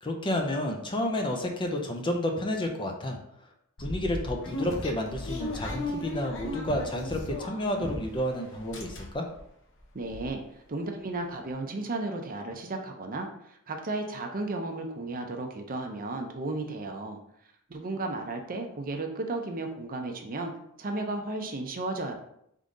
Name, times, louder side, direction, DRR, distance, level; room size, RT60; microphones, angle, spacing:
voice 1, 0.0-3.2 3.8-9.3, left 1 dB, 20° left, 2 dB, 0.6 m, -30 dB
sound 1, 3.8-8.3 8.5-9.4 9.8-9.9 10.1-10.3, left 2 dB, 55° left, 0.7 m, -36 dB
voice 2, 9.9-10.4 10.7-13.3 13.7-17.2 17.7-20.5 20.8-22.1, right 2 dB, 40° right, 4 dB, 0.6 m, -34 dB
3.7 x 3.6 x 3.8 m, 0.73 s
head